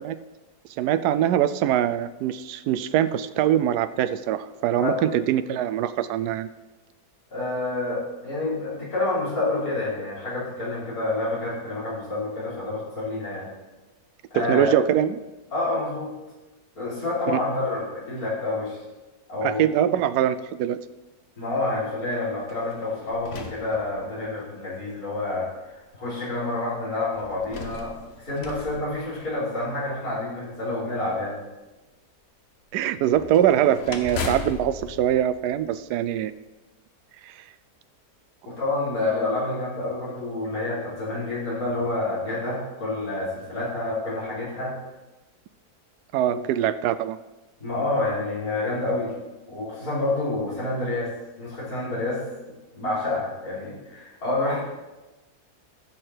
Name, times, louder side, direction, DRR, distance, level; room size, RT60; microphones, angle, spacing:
voice 1, 0.8-6.5 14.3-15.2 17.3-17.4 19.4-20.8 32.7-36.3 37.2-37.4 46.1-47.2, right 11 dB, 85° right, 14 dB, 1.1 m, -23 dB
voice 2, 7.3-13.5 14.3-14.7 15.5-16.1 16.8-18.8 19.3-19.7 21.4-31.4 38.4-44.8 47.6-49.1 49.5-51.1 51.4-54.6, left 2 dB, 60° left, -9 dB, 5.1 m, -28 dB
sound 1, 22.4-24.4 25.2-25.3 27.1-29.7 33.1-36.2, left 4 dB, 45° left, 1.1 m, -37 dB
15.0 x 6.7 x 4.4 m, 1.1 s
omnidirectional pair, 1.7 m